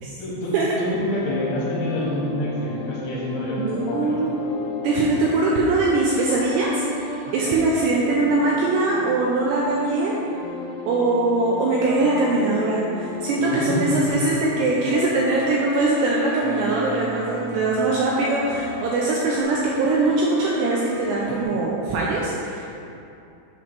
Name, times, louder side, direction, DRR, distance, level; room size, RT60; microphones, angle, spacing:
voice 1, 0.2-4.2 7.2-7.3 13.5-14.2 15.5-15.6 21.3-21.5, left 1 dB, 75° left, -6 dB, 3.0 m, -28 dB
sound 1, 1.2-19.4, left 3 dB, 90° left, 3.0 m, -36 dB
sound 2, 1.8-21.4, equal, 65° right, 2.6 m, -37 dB
voice 2, 3.6-4.3 4.8-6.8 7.3-10.2 10.9-22.8, right 2 dB, 85° right, -4 dB, 2.4 m, -22 dB
7.5 x 3.1 x 5.8 m, 2.7 s
omnidirectional pair, 5.3 m